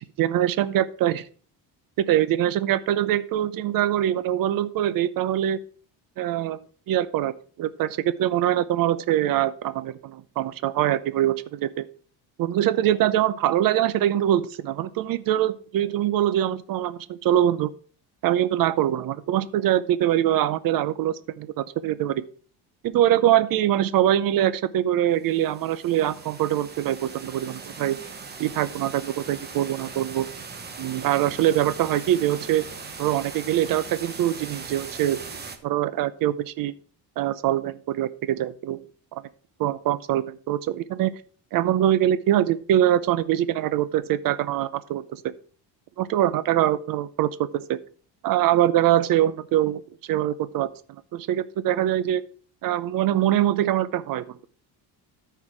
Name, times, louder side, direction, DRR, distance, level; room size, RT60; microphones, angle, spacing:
voice 1, 0.2-1.2 2.0-5.6 6.2-6.6 6.9-7.3 7.6-11.9 12.4-17.7 18.2-22.2 22.8-28.0 28.4-30.3 30.8-32.6 33.0-35.2 35.6-36.7 37.2-38.8 39.1-39.2 39.6-41.2 41.5-45.3 46.0-47.8 48.2-49.8 50.1-50.7 51.1-52.2 52.6-54.4, right 12 dB, 55° right, 15 dB, 0.7 m, -23 dB
sound 1, 25.2-35.6, right 5 dB, 25° right, 1.0 m, -40 dB
13.5 x 4.7 x 4.6 m, 0.43 s
cardioid pair, 155°, 42 cm